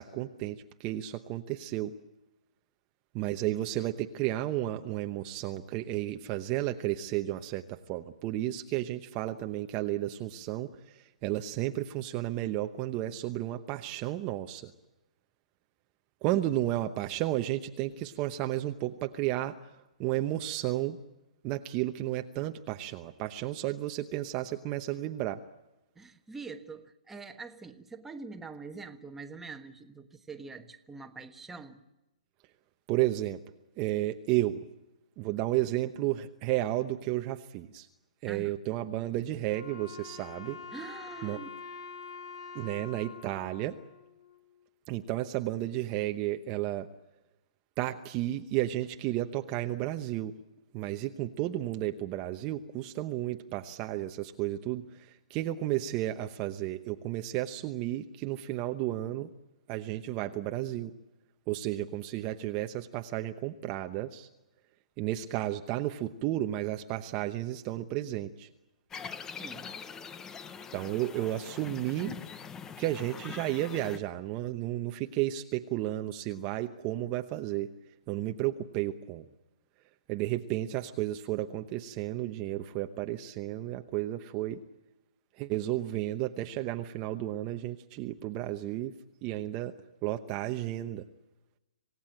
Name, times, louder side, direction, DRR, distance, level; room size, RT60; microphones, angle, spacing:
voice 1, 0.0-1.9 3.1-14.7 16.2-19.6 20.0-21.0 21.4-25.4 32.9-33.4 33.8-34.6 35.2-37.9 38.2-40.6 41.2-41.4 42.5-43.8 44.9-46.9 47.8-50.3 50.7-59.3 59.7-60.9 61.5-64.3 65.0-68.5 70.7-72.2 72.8-77.7 78.1-79.2 80.1-84.6 85.4-88.9 89.2-89.7 90.0-91.0, right 14 dB, 25° right, 6 dB, 0.9 m, -32 dB
voice 2, 25.9-31.8 38.3-38.6 40.7-41.5 69.4-69.7, right 4 dB, 5° right, 5 dB, 1.3 m, -44 dB
Wind instrument woodwind instrument, 39.5-44.6, left 5 dB, 50° left, 3.1 m, -46 dB
sound 1, 68.9-74.0, left 6 dB, 15° left, 0.8 m, -43 dB
27.0 x 17.0 x 8.9 m, 1.0 s
hypercardioid pair, 150°, 4 cm